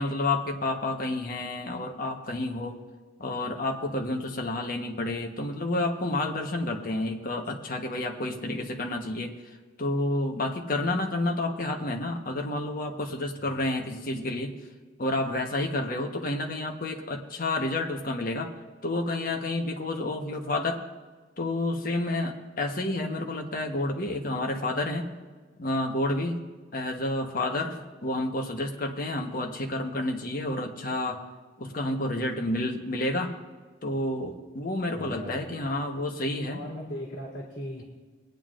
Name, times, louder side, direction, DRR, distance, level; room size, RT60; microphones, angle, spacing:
voice 1, 0.0-2.8 3.2-9.3 9.8-14.5 15.0-18.5 18.8-20.8 21.4-25.1 25.6-26.4 26.7-31.2 31.6-33.3 33.8-36.6, left 2 dB, 50° left, 2 dB, 1.1 m, -30 dB
voice 2, 13.4-13.7 34.9-35.5 36.5-37.8, left 1 dB, 65° left, -7 dB, 2.5 m, -38 dB
22.0 x 9.1 x 2.5 m, 1.4 s
head